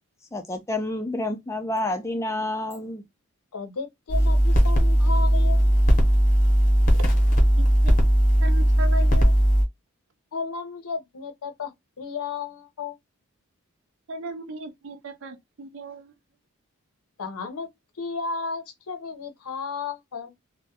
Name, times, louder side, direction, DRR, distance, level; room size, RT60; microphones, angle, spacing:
voice 1, 0.3-3.0, left 2 dB, 15° left, 0.3 m, -29 dB
voice 2, 3.5-5.8 10.3-11.7 12.0-13.0 17.2-17.7 18.0-20.3, left 4 dB, 80° left, 0.6 m, -33 dB
sound 1, 4.1-9.6, equal, 35° left, 0.7 m, -18 dB
voice 3, 7.6-8.1 8.4-9.4 14.1-16.1, right 1 dB, 60° right, 0.4 m, -36 dB
2.2 x 2.0 x 2.7 m
head